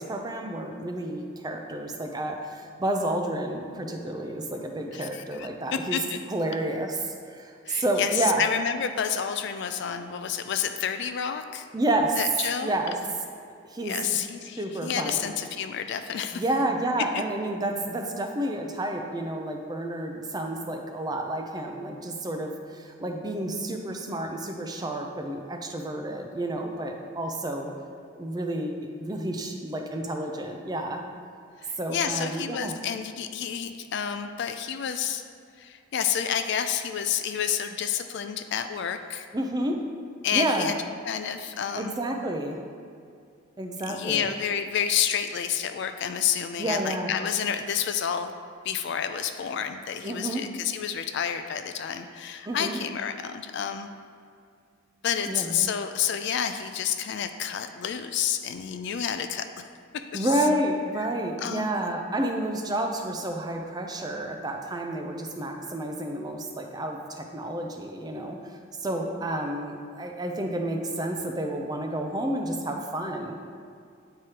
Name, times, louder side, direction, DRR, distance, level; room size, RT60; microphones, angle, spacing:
voice 1, 0.0-6.0 6.3-8.4 11.7-12.2 12.6-12.9 13.7-14.0 14.6-15.3 16.3-27.7 28.1-31.0 31.8-32.7 39.3-39.8 40.3-40.7 41.8-42.6 43.6-44.3 46.6-47.1 50.0-50.4 52.5-52.8 55.3-55.5 60.1-73.3, right 1 dB, 20° right, 3 dB, 0.4 m, -30 dB
voice 2, 4.9-6.2 7.7-11.7 12.2-12.7 13.8-16.4 17.1-17.2 31.6-35.2 35.6-39.3 40.2-40.7 41.1-42.0 43.9-48.3 48.6-53.9 55.0-59.5 59.9-60.4 61.4-61.7, left 8 dB, 55° left, 9 dB, 0.3 m, -29 dB
9.0 x 4.8 x 2.9 m, 2.3 s
head